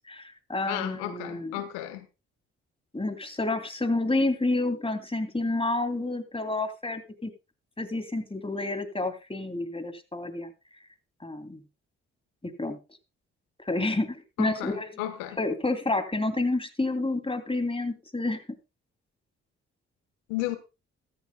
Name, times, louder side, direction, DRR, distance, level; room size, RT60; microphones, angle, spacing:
voice 1, 0.1-1.6 2.9-7.3 7.8-10.5 11.2-11.6 12.4-12.8 13.7-14.9 15.4-18.4, left 2 dB, 15° left, 2.8 m, -29 dB
voice 2, 0.7-2.1 14.4-15.4 20.3-20.6, left 14 dB, 90° left, 1.3 m, -33 dB
14.5 x 14.0 x 2.2 m
hypercardioid pair, 45°, 32 cm